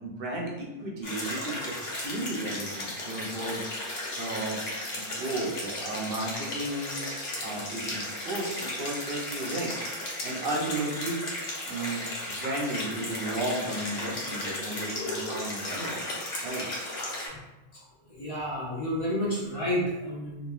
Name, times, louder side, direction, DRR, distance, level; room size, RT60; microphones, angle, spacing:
voice 1, 0.0-3.6 4.2-4.6 5.0-7.0 7.4-9.7 10.2-11.2 11.7-12.0 12.4-16.0 16.4-16.7, right 2 dB, 65° right, -2 dB, 0.7 m, -34 dB
sound 1, 1.0-17.3, left 1 dB, 75° left, 0.9 m, -35 dB
voice 2, 18.1-20.5, equal, 40° left, -8 dB, 0.7 m, -31 dB
3.0 x 2.1 x 2.3 m, 1.0 s
omnidirectional pair, 1.0 m